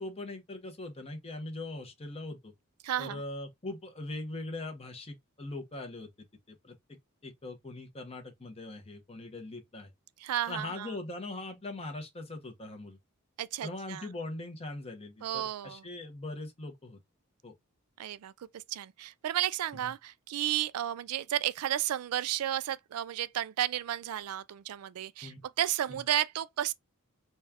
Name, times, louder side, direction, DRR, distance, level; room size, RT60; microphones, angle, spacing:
voice 1, 0.0-2.5 3.0-6.1 6.5-9.9 10.5-13.0 13.6-17.0 17.4-17.5 19.8-19.9 25.2-25.4 25.9-26.0, left 2 dB, 30° left, 1.0 m, -41 dB
voice 2, 2.8-3.2 10.2-10.9 13.4-14.1 15.2-15.8 18.0-26.7, right 12 dB, 85° right, 0.3 m, -33 dB
4.2 x 2.4 x 3.4 m
head